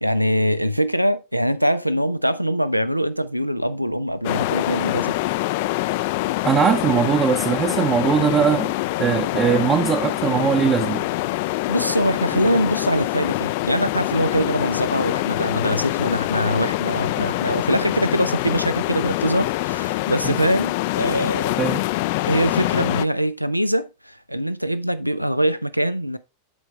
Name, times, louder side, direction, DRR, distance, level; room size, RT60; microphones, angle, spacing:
voice 1, 0.0-5.2 11.7-21.6 22.3-26.2, equal, 90° right, 0.5 m, -23 dB
sound 1, 4.2-23.1, left 18 dB, 50° left, 0.3 m, -25 dB
voice 2, 6.4-8.7 9.0-11.1 12.3-12.4 20.2-20.4 21.6-21.8, right 7 dB, 25° right, 0.7 m, -20 dB
12.5 x 4.7 x 3.2 m
figure-of-eight pair, 90°, 0 cm